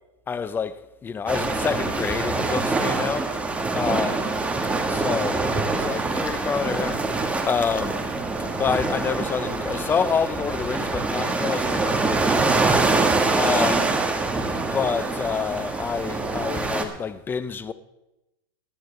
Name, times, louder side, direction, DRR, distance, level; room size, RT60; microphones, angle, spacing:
voice 1, 0.3-4.4 4.9-8.2 8.5-14.1 14.7-17.7, left 6 dB, 15° left, 0.6 m, -28 dB
sound 1, 1.3-16.8, right 3 dB, 10° right, 1.4 m, -25 dB
22.0 x 11.0 x 3.3 m
supercardioid pair, 130°, 12 cm